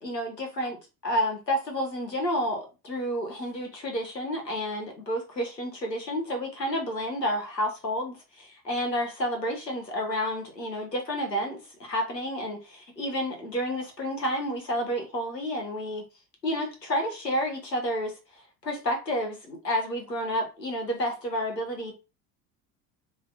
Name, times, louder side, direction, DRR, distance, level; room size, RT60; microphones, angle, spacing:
voice 1, 0.0-0.8 1.0-16.0 16.4-18.1 18.6-21.9, equal, 90° left, 1.0 m, -30 dB
2.8 x 2.8 x 3.2 m
figure-of-eight pair, 65°, 48 cm